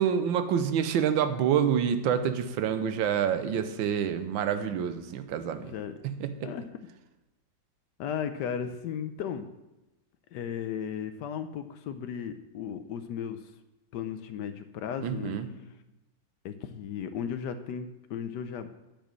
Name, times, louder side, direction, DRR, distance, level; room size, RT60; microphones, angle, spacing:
voice 1, 0.0-5.7 6.0-6.5 15.0-15.5, right 8 dB, 90° right, 10 dB, 1.5 m, -27 dB
voice 2, 5.6-5.9 6.4-6.7 8.0-9.5 10.3-13.4 13.9-15.4 16.4-18.7, left 8 dB, 75° left, 10 dB, 1.1 m, -35 dB
9.0 x 5.1 x 7.4 m, 1.0 s
omnidirectional pair, 2.1 m